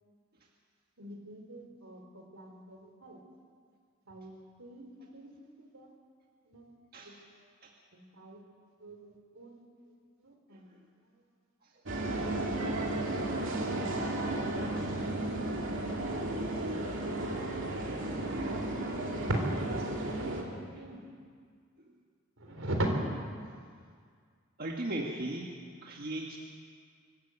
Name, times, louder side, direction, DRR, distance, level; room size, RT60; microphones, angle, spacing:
voice 1, 1.0-3.2 4.1-5.9 6.5-6.6 7.0-7.5 7.9-8.4 8.8-9.6 10.2-10.7 11.9-12.1 12.9-13.8 16.5-17.3 18.1-21.1 22.4-22.9, right 1 dB, 80° right, 2 dB, 3.7 m, -41 dB
sound 1, 11.9-20.4, right 1 dB, 65° right, 2.9 m, -33 dB
voice 2, 12.1-12.7 24.6-25.5 25.8-26.4, right 1 dB, 50° right, 0 dB, 1.6 m, -38 dB
24.5 x 13.0 x 8.3 m, 2.1 s
head